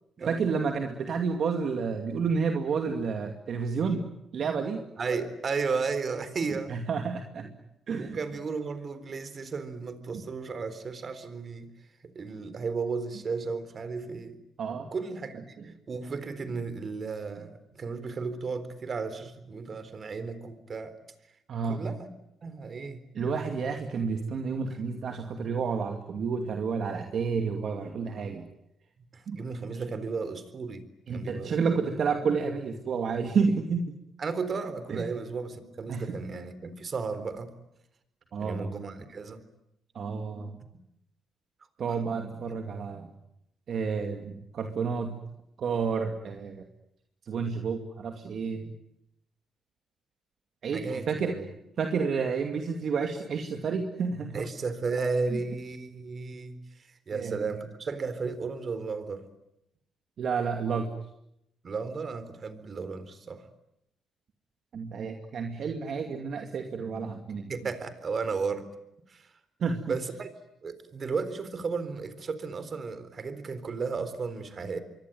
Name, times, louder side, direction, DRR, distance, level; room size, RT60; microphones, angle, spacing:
voice 1, 0.3-4.1 4.3-4.8 6.7-7.5 7.9-8.2 14.6-14.9 21.5-21.8 23.1-28.5 29.3-29.4 31.1-33.9 34.9-35.1 35.9-36.2 38.3-38.7 39.9-40.6 41.8-43.1 43.7-45.2 45.6-46.6 47.3-48.7 50.6-51.4 51.8-54.5 55.3-55.4 57.1-57.5 60.2-60.9 64.7-67.5 69.6-70.0, right 5 dB, 60° right, 4 dB, 2.5 m, -30 dB
voice 2, 5.0-6.7 8.0-11.7 12.1-14.4 14.9-20.9 21.6-22.1 22.4-23.0 29.1-30.8 31.1-31.9 34.2-37.5 38.4-39.4 50.7-51.5 54.3-59.3 61.6-63.5 67.5-68.7 69.1-69.3 69.9-70.3 70.6-74.8, right 4 dB, 45° right, 13 dB, 3.9 m, -34 dB
26.5 x 23.5 x 9.3 m, 0.82 s
cardioid pair, 90°, 0 cm